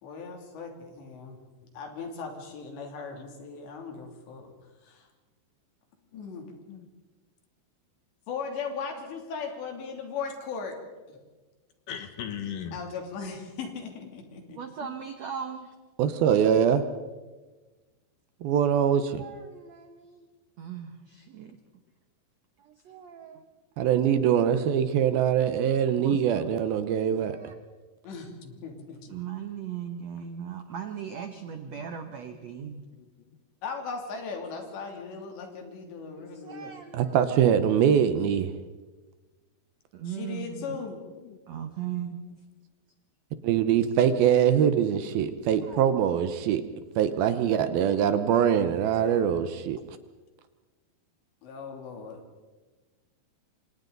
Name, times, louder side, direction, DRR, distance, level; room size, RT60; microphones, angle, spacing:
voice 1, 0.0-1.4 1.7-4.5 4.8-5.1 6.1-6.4 8.3-10.8 11.1-11.2 12.7-14.9 28.0-29.2 33.6-36.7 40.1-41.0 51.4-52.2, left 5 dB, 85° left, 2 dB, 5.2 m, -38 dB
voice 2, 11.9-12.8 21.1-21.2 29.1-29.2 31.7-32.1 32.6-33.1 35.4-35.7 36.1-37.0 40.5-41.4 42.2-42.4, left 8 dB, 60° left, 7 dB, 2.6 m, -42 dB
voice 3, 14.5-15.7 19.2-20.3 20.6-21.6 22.6-23.4 26.0-26.5 27.3-27.5 29.1-32.8 36.3-37.2 39.9-40.8 41.5-42.2 45.6-45.8 47.3-47.4, right 8 dB, 90° right, 7 dB, 1.4 m, -38 dB
voice 4, 16.0-16.8 18.4-19.2 23.8-27.4 36.9-38.5 43.4-46.6 47.0-49.8, right 8 dB, 75° right, 10 dB, 2.5 m, -23 dB
28.0 x 25.5 x 4.0 m, 1.3 s
omnidirectional pair, 4.9 m